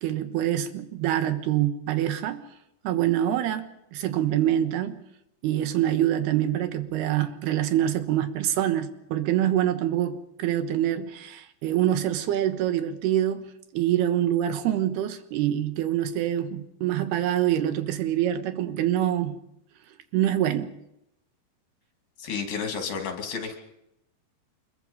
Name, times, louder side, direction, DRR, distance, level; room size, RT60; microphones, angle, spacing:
voice 1, 0.0-2.4 2.8-5.0 5.4-19.4 20.1-20.7, right 12 dB, 75° right, 3.3 m, -25 dB
voice 2, 22.2-23.6, left 6 dB, 60° left, 4.2 m, -31 dB
25.5 x 22.0 x 5.5 m
omnidirectional pair, 4.8 m